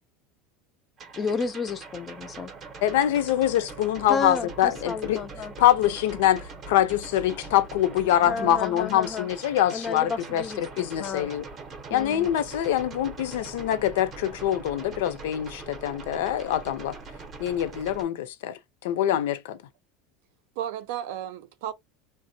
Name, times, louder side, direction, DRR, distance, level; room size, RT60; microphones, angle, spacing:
sound 1, 1.0-18.0, right 4 dB, 25° right, 0.6 m, -42 dB
voice 1, 1.2-2.5 4.1-5.5 8.3-9.3 9.7-10.6 11.0-11.3 11.9-12.3, left 5 dB, 20° left, 0.4 m, -31 dB
voice 2, 2.8-5.2 5.6-11.4 11.9-16.9 17.4-19.6, left 12 dB, 80° left, 0.5 m, -24 dB
voice 3, 8.2-8.8 12.1-12.3 20.6-21.7, right 11 dB, 65° right, 0.5 m, -35 dB
3.4 x 2.1 x 2.6 m
cardioid pair, 170°, 0 cm